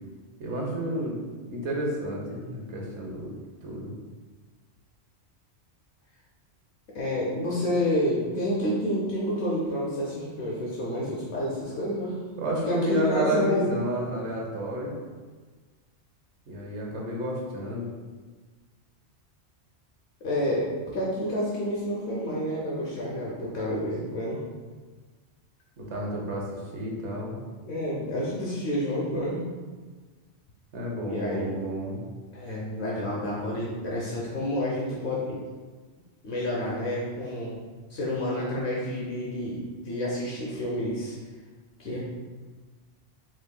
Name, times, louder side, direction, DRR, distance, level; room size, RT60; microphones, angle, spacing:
voice 1, 0.4-1.2 1.5-3.3 3.6-3.9 12.4-15.0 16.5-17.9 25.8-27.4 30.7-32.0, right 1 dB, 80° right, -2 dB, 1.2 m, -30 dB
voice 2, 6.9-12.2 12.6-13.7 20.2-24.4 27.6-29.4 31.0-31.5 32.3-35.4 36.2-37.6 37.9-41.2 41.8-42.0, left 1 dB, 75° left, -5 dB, 1.1 m, -29 dB
7.5 x 2.6 x 2.2 m, 1.4 s
omnidirectional pair, 1.2 m